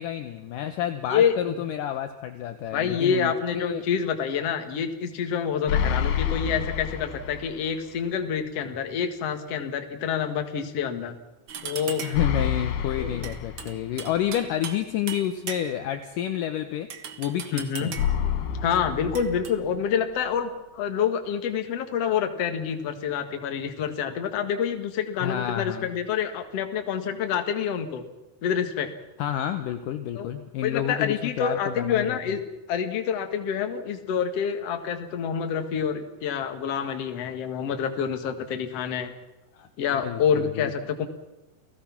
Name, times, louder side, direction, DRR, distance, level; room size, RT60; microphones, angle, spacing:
voice 1, 0.0-3.8 12.0-16.9 17.2-18.0 25.2-25.9 29.2-32.2 39.5-39.7 40.0-40.7, left 10 dB, 70° left, 7 dB, 2.3 m, -29 dB
voice 2, 1.1-1.6 2.7-11.2 11.6-12.1 13.0-13.3 17.5-17.9 18.6-28.0 28.4-28.9 30.2-30.3 30.6-32.4 32.7-39.1 39.8-41.1, left 7 dB, 50° left, 6 dB, 2.3 m, -27 dB
sound 1, 5.7-7.7 8.0-8.1 12.1-14.1 18.0-19.9, left 8 dB, 90° left, 3.4 m, -28 dB
sound 2, 11.5-12.3 13.2-14.8 15.1-15.9 16.9-18.2 19.1-19.5, right 7 dB, 65° right, 1.2 m, -38 dB
29.5 x 18.0 x 6.0 m, 0.98 s
omnidirectional pair, 4.4 m